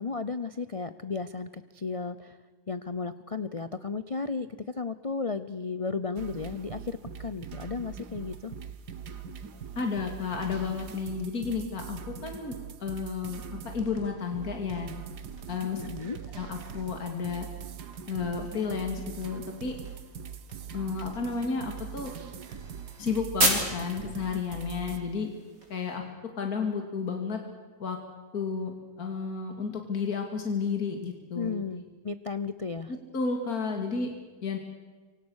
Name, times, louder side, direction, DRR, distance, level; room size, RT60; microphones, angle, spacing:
voice 1, 0.0-2.4 2.7-8.6 15.7-16.2 31.3-32.9, left 4 dB, 35° left, 12 dB, 0.5 m, -34 dB
sound 1, 6.2-25.0, right 7 dB, 85° right, 1.8 m, -42 dB
voice 2, 9.8-12.5 12.8-14.9 15.5-15.8 16.4-17.5 18.1-19.7 20.7-22.1 23.0-25.3 25.7-26.0 26.4-27.4 27.8-28.0 28.3-31.5 32.9-34.1 34.4-34.6, left 5 dB, 65° left, 3 dB, 3.0 m, -32 dB
sound 2, 14.2-26.0, right 2 dB, 60° right, 4.8 m, -37 dB
27.0 x 24.0 x 6.5 m, 1.4 s
omnidirectional pair, 1.7 m